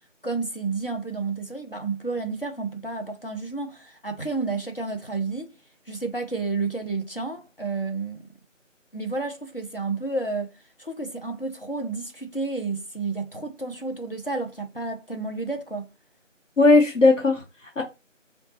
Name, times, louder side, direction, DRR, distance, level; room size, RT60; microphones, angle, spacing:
voice 1, 0.2-5.5 5.9-8.2 8.9-10.5 10.8-15.9, right 3 dB, 45° left, 0.5 m, -31 dB
voice 2, 16.6-17.8, left 3 dB, 70° left, 0.9 m, -18 dB
3.8 x 2.2 x 2.8 m
figure-of-eight pair, 175°, 39 cm